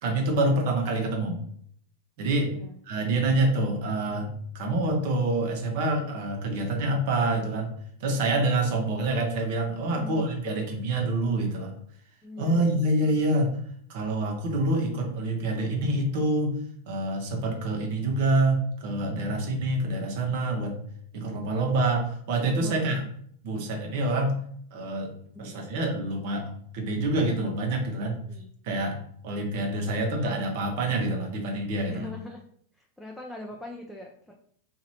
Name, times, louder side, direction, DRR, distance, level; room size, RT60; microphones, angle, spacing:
voice 1, 0.0-1.4 2.2-2.5 2.9-7.7 8.0-11.7 12.4-13.5 13.9-16.5 16.9-20.7 21.1-23.0 23.4-24.4 24.7-25.1 25.4-26.4 26.7-28.2 28.6-29.0 29.2-32.1, right 2 dB, 60° right, 1 dB, 0.9 m, -26 dB
voice 2, 9.8-10.3 12.2-12.9 22.6-23.1 25.3-25.7 28.2-28.5 31.9-32.4 32.8-34.3, left 2 dB, 5° left, -1 dB, 0.4 m, -41 dB
3.0 x 2.6 x 2.7 m, 0.63 s
hypercardioid pair, 115°, 0 cm